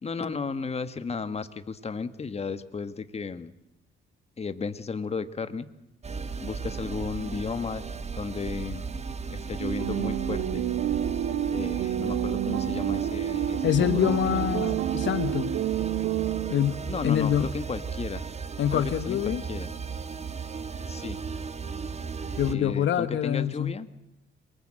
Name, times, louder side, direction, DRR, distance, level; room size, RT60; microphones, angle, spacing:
voice 1, 0.0-3.5 4.4-5.7 6.4-7.8 8.1-8.8 9.3-10.6 11.5-14.6 16.9-18.3 18.7-19.7 20.9-21.2 22.4-23.9, left 5 dB, 30° left, 12 dB, 1.6 m, -34 dB
sound 1, 6.0-22.6, right 5 dB, 35° right, 1.6 m, -36 dB
sound 2, 9.6-16.9, right 11 dB, 80° right, 1.8 m, -29 dB
voice 2, 13.6-15.6 16.5-17.5 18.6-19.4 22.4-23.8, left 10 dB, 70° left, 13 dB, 1.2 m, -26 dB
27.0 x 23.0 x 7.7 m, 0.85 s
cardioid pair, 90°, 20 cm